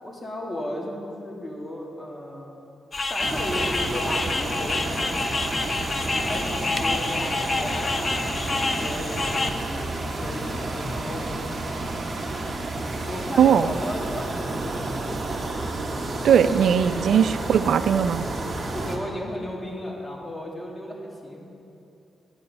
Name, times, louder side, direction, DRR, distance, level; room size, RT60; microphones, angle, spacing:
voice 1, 0.0-2.5 3.1-5.4 6.0-12.1 13.0-15.1 18.7-21.5, left 1 dB, 20° left, -1 dB, 2.4 m, -35 dB
sound 1, 2.9-9.5, left 3 dB, 40° left, 0.7 m, -27 dB
sound 2, 3.2-19.0, right 2 dB, 40° right, 1.7 m, -31 dB
voice 2, 16.2-18.3, right 8 dB, 75° right, 12 dB, 0.4 m, -19 dB
9.5 x 9.2 x 5.4 m, 2.7 s
cardioid pair, 65°, 0 cm